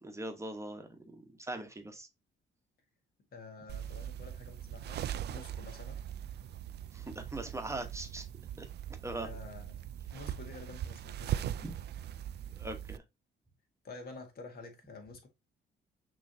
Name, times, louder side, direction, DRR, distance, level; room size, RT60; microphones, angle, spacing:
voice 1, 0.0-2.1 6.9-8.3 8.6-8.7 9.0-9.3 11.6-11.8 12.6-13.0, right 2 dB, 15° right, 1.1 m, -41 dB
voice 2, 3.3-6.0 9.2-9.8 10.1-11.8 13.8-15.3, left 3 dB, 50° left, 1.6 m, -49 dB
sound 1, 3.7-13.0, right 11 dB, 55° right, 0.4 m, -40 dB
6.1 x 3.2 x 2.7 m
cardioid pair, 90°, 20 cm